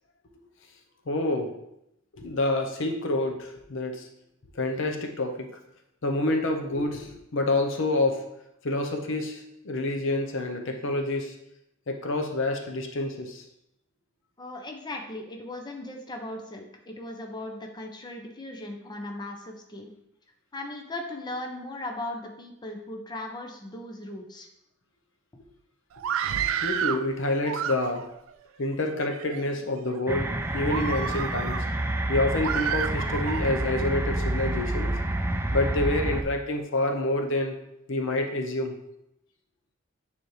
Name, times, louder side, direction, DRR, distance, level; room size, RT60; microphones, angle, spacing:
voice 1, 1.1-1.5 2.2-4.1 4.6-5.5 6.0-8.3 8.6-11.3 11.9-13.4 26.6-28.1 28.6-31.7 32.1-35.0 35.5-37.6 37.9-38.8, left 2 dB, 70° left, 3 dB, 0.7 m, -28 dB
voice 2, 14.4-19.9 20.5-24.5 25.3-25.4, left 1 dB, 20° left, 2 dB, 0.7 m, -38 dB
Screaming, 25.9-27.0 27.4-28.2 28.9-29.4 30.0-30.1 30.6-31.6 32.4-33.4, right 8 dB, 90° right, 0.4 m, -30 dB
sound 1, 30.1-36.2, right 1 dB, 10° right, 0.4 m, -28 dB
8.9 x 3.5 x 3.2 m, 0.82 s
head